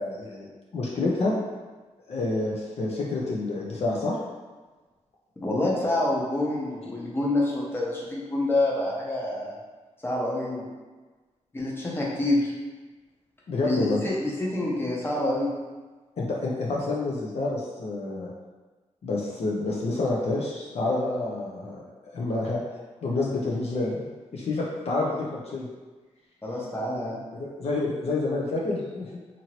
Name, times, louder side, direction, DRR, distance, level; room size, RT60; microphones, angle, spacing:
voice 1, 0.0-1.3 2.1-4.2 13.5-14.0 16.2-18.3 19.0-21.8 22.1-22.6 23.0-25.6 27.4-29.1, left 2 dB, 55° left, -4 dB, 0.5 m, -28 dB
voice 2, 5.4-9.5 10.0-10.7 11.5-12.5 13.6-15.5 26.4-27.2, left 2 dB, 20° left, -4 dB, 0.7 m, -27 dB
2.9 x 2.6 x 2.9 m, 1.3 s
cardioid pair, 95°, 12 cm